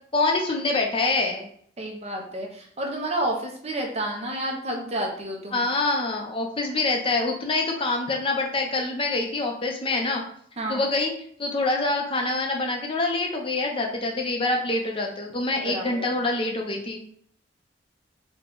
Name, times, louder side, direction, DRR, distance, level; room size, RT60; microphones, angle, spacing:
voice 1, 0.1-1.5 5.5-10.2 10.7-11.1 11.4-17.1, left 2 dB, 30° left, 1 dB, 0.7 m, -25 dB
voice 2, 1.8-5.7 10.6-10.8 15.6-16.1, right 1 dB, 35° right, 0 dB, 0.7 m, -30 dB
3.9 x 2.3 x 3.7 m, 0.63 s
head